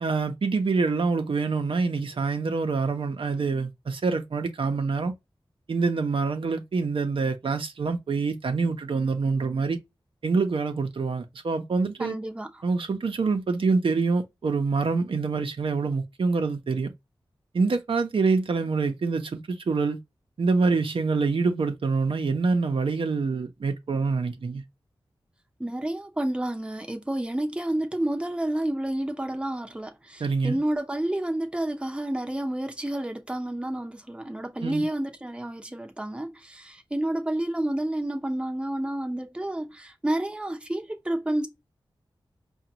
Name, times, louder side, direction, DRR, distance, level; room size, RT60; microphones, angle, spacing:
voice 1, 0.0-5.1 5.7-9.8 10.2-12.2 12.6-16.9 17.5-20.0 20.4-24.6 30.2-30.6 34.6-34.8, right 4 dB, 75° right, 0.7 m, -26 dB
voice 2, 12.0-12.5 25.6-41.5, right 1 dB, 10° right, 0.7 m, -30 dB
4.9 x 2.3 x 2.8 m
wide cardioid pair, 70°, 9 cm